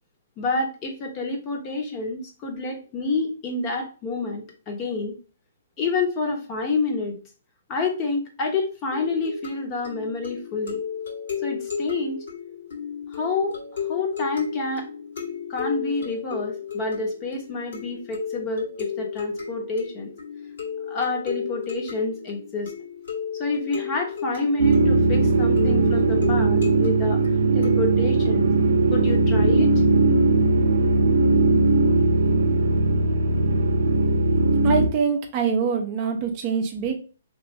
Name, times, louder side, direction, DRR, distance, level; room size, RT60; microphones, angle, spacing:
voice 1, 0.4-5.1 5.8-7.2 7.7-10.8 11.4-12.2 13.1-13.6 13.9-14.8 15.5-20.1 20.9-22.7 23.4-27.2 27.5-28.5 28.9-29.7, left 3 dB, 30° left, 2 dB, 0.9 m, -28 dB
sound 1, 8.9-28.1, left 6 dB, 75° left, 1.7 m, -34 dB
sound 2, 24.6-34.9, right 3 dB, 85° right, 0.6 m, -19 dB
voice 2, 34.6-37.0, right 6 dB, 35° right, 3 dB, 0.6 m, -24 dB
3.0 x 2.5 x 3.1 m, 0.36 s
hypercardioid pair, 145°, 0 cm